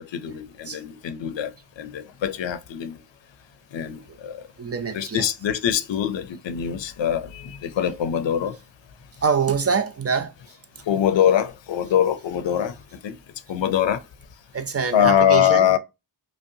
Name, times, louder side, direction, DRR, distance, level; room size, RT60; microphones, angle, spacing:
voice 1, 0.1-1.5 1.8-3.0 3.7-4.4 4.9-8.6 10.9-12.7 13.0-13.1 13.5-14.0 14.9-15.8, left 9 dB, 85° left, 0.6 m, -23 dB
voice 2, 4.6-5.3 9.2-10.3 14.5-15.7, right 6 dB, 35° right, 0.5 m, -24 dB
5.3 x 2.2 x 2.6 m
wide cardioid pair, 125°, 44 cm